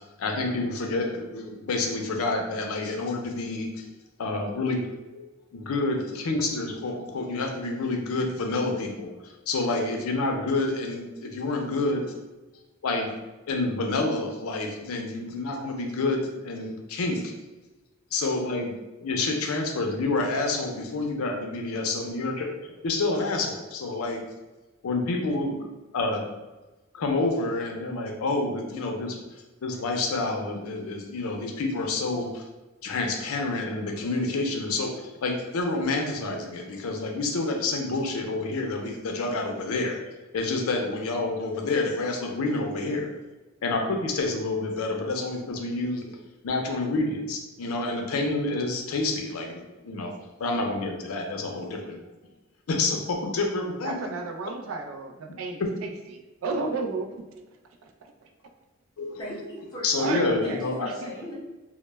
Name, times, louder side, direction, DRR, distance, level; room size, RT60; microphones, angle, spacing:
voice 1, 0.0-3.9 4.2-12.0 12.8-13.1 13.5-17.2 18.1-18.7 19.0-22.5 22.8-24.2 24.8-25.5 25.9-26.2 26.9-29.2 29.6-32.4 32.8-34.9 35.2-40.0 40.3-43.1 43.6-46.1 46.4-50.1 50.4-52.0 52.7-53.9 59.0-59.2 59.8-60.9, left 2 dB, 85° left, 2 dB, 0.5 m, -28 dB
voice 2, 53.8-55.9 56.4-57.2 60.0-61.1, right 3 dB, 70° right, 3 dB, 0.3 m, -32 dB
voice 3, 59.2-60.0 60.4-61.3, equal, 20° left, -5 dB, 0.6 m, -38 dB
2.1 x 2.0 x 3.1 m, 1.1 s
head